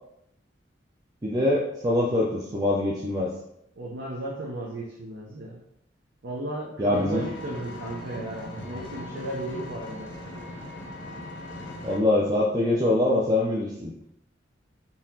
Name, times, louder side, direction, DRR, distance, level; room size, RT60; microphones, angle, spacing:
voice 1, 1.2-3.3 6.8-7.2 8.7-8.8 11.8-13.9, left 1 dB, 20° right, -4 dB, 0.4 m, -24 dB
voice 2, 3.8-5.6 6.2-10.1, right 1 dB, 65° right, -3 dB, 0.6 m, -35 dB
Engine, 6.9-12.0, left 1 dB, 65° left, 0.7 m, -39 dB
3.9 x 2.8 x 2.7 m, 0.80 s
head